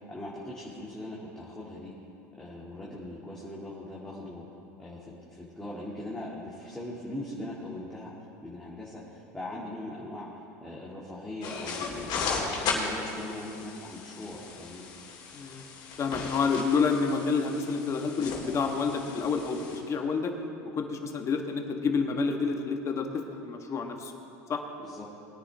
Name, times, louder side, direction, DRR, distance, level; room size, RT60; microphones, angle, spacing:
voice 1, 0.1-1.9 2.4-4.4 4.8-8.1 8.4-14.8 24.8-25.1, left 1 dB, 5° left, -7 dB, 2.3 m, -40 dB
sound 1, 11.4-19.8, left 4 dB, 55° left, 3.0 m, -36 dB
voice 2, 15.3-15.6 16.0-20.3 20.6-24.1 24.5-24.6, left 5 dB, 35° left, 4 dB, 1.5 m, -29 dB
20.5 x 9.6 x 3.6 m, 2.7 s
hypercardioid pair, 90°, 9 cm